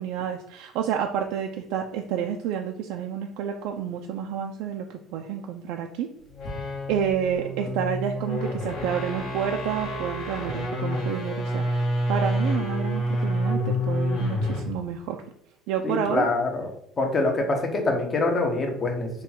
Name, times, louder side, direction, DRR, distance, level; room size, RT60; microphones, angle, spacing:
voice 1, 0.0-6.1 6.5-15.2 15.7-16.3, right 8 dB, 80° right, 3 dB, 0.3 m, -29 dB
sound 1, 6.3-14.8, equal, 60° left, 1.6 m, -28 dB
voice 2, 15.8-16.7 17.0-19.1, left 2 dB, 30° left, 4 dB, 0.8 m, -25 dB
3.7 x 2.3 x 4.3 m, 0.71 s
cardioid pair, 145°, 0 cm